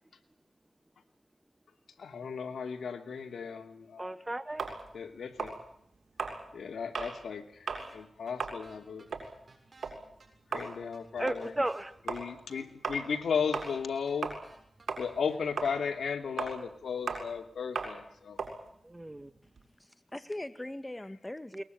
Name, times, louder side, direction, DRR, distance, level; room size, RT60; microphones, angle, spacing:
voice 1, 2.0-4.1 4.9-5.6 6.5-9.1 10.5-11.5 12.1-14.3 15.0-18.4, left 6 dB, 85° left, 2.7 m, -35 dB
voice 2, 4.0-4.6 11.2-11.9 18.8-19.3 21.5-21.6, right 1 dB, 20° right, 1.9 m, -34 dB
sound 1, 4.6-7.2 7.6-7.9 8.2-14.6 14.9-19.7, right 4 dB, 75° right, 7.1 m, -38 dB
sound 2, 7.8-8.0 8.3-8.4 8.6-9.9 10.2-10.3 10.6-11.8 12.1-12.2 12.5-13.8 14.1-14.2 14.4-15.4, right 3 dB, 50° right, 7.6 m, -57 dB
voice 3, 19.8-21.6, left 1 dB, 15° left, 2.0 m, -41 dB
22.0 x 20.0 x 9.4 m
cardioid pair, 55°, 0 cm